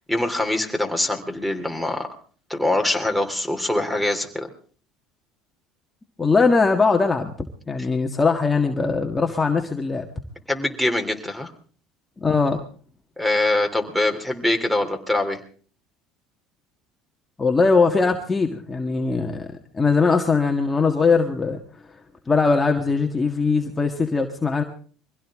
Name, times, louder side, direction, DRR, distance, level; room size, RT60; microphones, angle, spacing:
voice 1, 0.1-2.1 2.5-4.5 10.5-11.5 13.2-15.4, left 1 dB, 5° right, 8 dB, 3.2 m, -23 dB
voice 2, 6.2-7.3 7.7-10.1 12.2-12.7 17.4-19.5 19.7-21.6 21.9-22.0 22.3-24.6, left 4 dB, 20° left, 2 dB, 1.7 m, -20 dB
23.5 x 16.5 x 3.7 m, 0.44 s
supercardioid pair, 95°, 0 cm